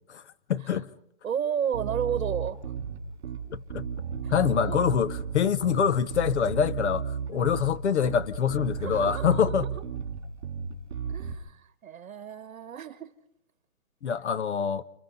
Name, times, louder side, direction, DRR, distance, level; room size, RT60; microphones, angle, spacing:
voice 1, 0.5-0.9 3.5-3.9 4.3-7.0 7.3-9.7 14.0-14.8, left 8 dB, 55° left, 1.0 m, -25 dB
voice 2, 1.2-2.6 4.2-4.8 7.3-7.5 8.8-9.6 11.1-13.1, right 8 dB, 75° right, 1.3 m, -33 dB
Bass guitar, 1.7-11.3, right 7 dB, 50° right, 3.7 m, -34 dB
29.5 x 29.0 x 4.0 m
hypercardioid pair, 170°, 41 cm